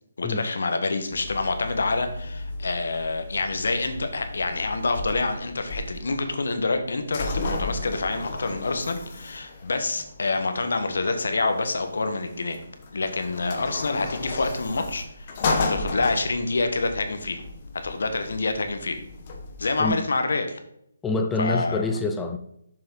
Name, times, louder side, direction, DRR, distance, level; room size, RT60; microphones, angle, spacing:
voice 1, 0.2-12.6 12.9-17.4 17.8-19.0 19.6-20.6 21.4-21.9, left 3 dB, 75° left, 7 dB, 1.4 m, -27 dB
sound 1, 1.1-19.9, left 3 dB, 35° left, 1.2 m, -34 dB
voice 2, 21.0-22.4, left 2 dB, 10° left, 6 dB, 0.5 m, -26 dB
7.1 x 6.5 x 4.0 m, 0.74 s
hypercardioid pair, 165°, 0 cm